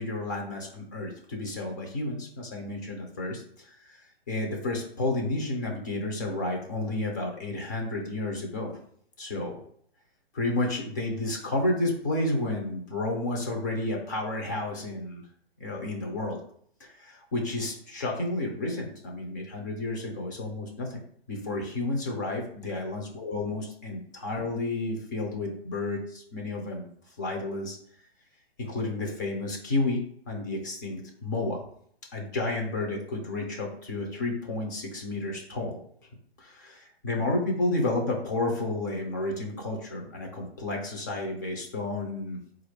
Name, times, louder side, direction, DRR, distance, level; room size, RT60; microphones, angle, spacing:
voice 1, 0.0-8.8 9.2-9.6 10.3-15.2 15.6-16.4 16.8-21.0 21.3-26.9 27.2-27.8 28.6-31.6 32.1-35.8 36.4-42.4, left 2 dB, 20° left, 1 dB, 0.4 m, -31 dB
4.2 x 2.4 x 3.2 m, 0.63 s
hypercardioid pair, 155°, 31 cm